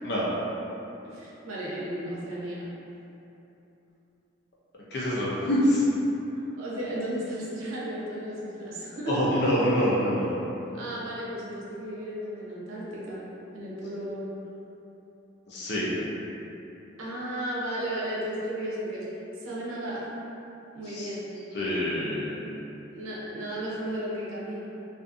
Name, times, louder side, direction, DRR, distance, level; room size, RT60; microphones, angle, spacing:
voice 1, 1.0-2.7 6.6-9.4 10.7-13.2 13.5-14.3 17.0-19.1 19.4-20.1 20.7-21.3 22.9-24.7, right 1 dB, 85° right, -6 dB, 0.6 m, -34 dB
voice 2, 4.9-5.8 9.1-10.3 15.5-15.9 20.9-21.1 21.5-22.4, equal, 55° left, -6 dB, 0.5 m, -25 dB
2.5 x 2.5 x 2.5 m, 3.0 s
head